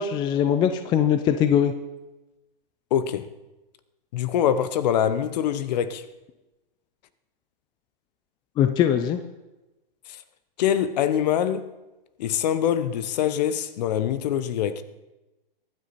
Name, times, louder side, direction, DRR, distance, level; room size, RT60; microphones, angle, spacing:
voice 1, 0.0-1.7 8.6-9.2, left 9 dB, 15° left, 0.5 m, -21 dB
voice 2, 2.9-3.3 4.1-6.0 10.1-10.2 10.6-11.7 12.2-14.8, left 9 dB, 45° left, 1.0 m, -24 dB
23.0 x 9.7 x 4.3 m
hypercardioid pair, 130°, 29 cm